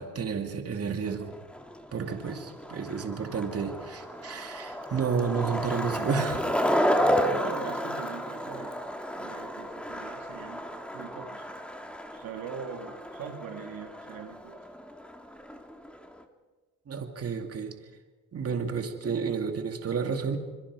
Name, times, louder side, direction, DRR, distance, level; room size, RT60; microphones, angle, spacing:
voice 1, 0.0-1.3 1.9-6.5 16.9-17.7 18.3-20.4, right 6 dB, 40° right, 5 dB, 2.4 m, -31 dB
Skateboard, 1.1-16.2, equal, 5° left, 2.0 m, -32 dB
voice 2, 7.2-8.8 9.2-11.4 12.1-14.6, right 6 dB, 70° right, 3 dB, 2.1 m, -42 dB
27.0 x 21.5 x 4.8 m, 1.3 s
cardioid pair, 95°, 36 cm